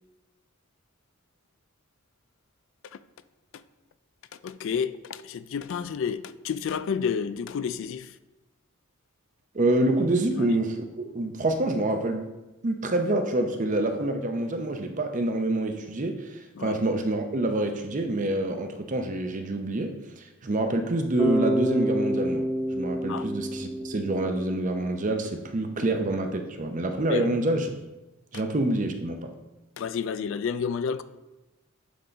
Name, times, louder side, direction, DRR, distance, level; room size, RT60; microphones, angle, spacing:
voice 1, 4.4-8.2 10.3-10.5 16.6-16.8 23.1-23.3 27.1-27.3 29.8-31.0, left 6 dB, 60° left, 0.3 m, -30 dB
voice 2, 9.5-12.2 12.6-27.7 28.3-29.3, right 2 dB, 35° right, 0.6 m, -27 dB
Bass guitar, 21.2-25.1, equal, 15° left, 0.9 m, -28 dB
7.8 x 3.8 x 3.9 m
head